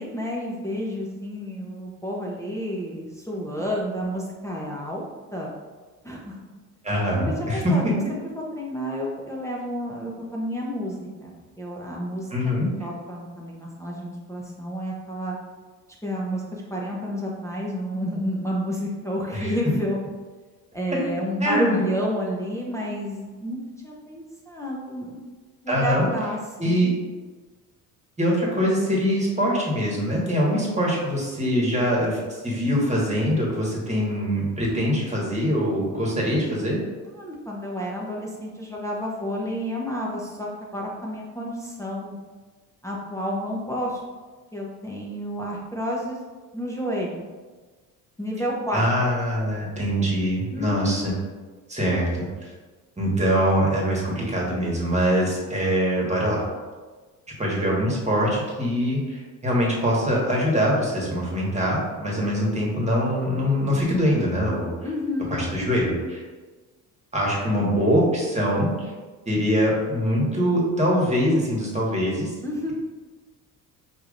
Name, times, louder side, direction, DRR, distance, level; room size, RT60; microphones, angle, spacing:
voice 1, 0.0-5.1 5.3-5.5 6.0-6.4 7.5-7.8 8.3-10.9 11.2-11.3 11.6-12.3 12.8-15.4 16.0-20.0 20.7-25.2 25.6-26.8 37.2-42.2 42.8-44.0 44.5-46.2 46.5-47.2 48.2-48.8 50.5-51.0 64.8-65.4 72.4-72.7, equal, 5° left, -4 dB, 0.7 m, -30 dB
voice 2, 6.8-7.7 12.3-12.7 19.3-19.5 21.4-21.8 25.7-26.0 26.6-26.9 28.2-36.8 48.7-51.1 51.7-52.5 53.0-56.4 57.4-64.7 65.3-66.2 67.1-68.9 69.3-72.3, equal, 15° right, -4 dB, 1.5 m, -23 dB
4.8 x 2.9 x 2.5 m, 1.3 s
hypercardioid pair, 60°, 45 cm